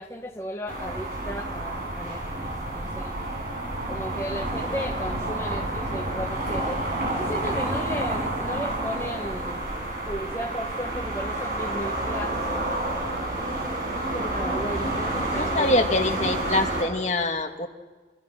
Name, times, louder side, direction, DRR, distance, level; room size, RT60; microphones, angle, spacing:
voice 1, 0.0-3.1 3.9-6.8 7.2-9.6 10.1-12.4 14.1-15.8, equal, 15° left, 1 dB, 1.3 m, -35 dB
sound 1, 0.7-16.8, right 1 dB, 55° right, 7.1 m, -29 dB
voice 2, 15.3-17.7, left 2 dB, 40° left, 5 dB, 1.9 m, -24 dB
30.0 x 27.0 x 6.2 m, 1.4 s
head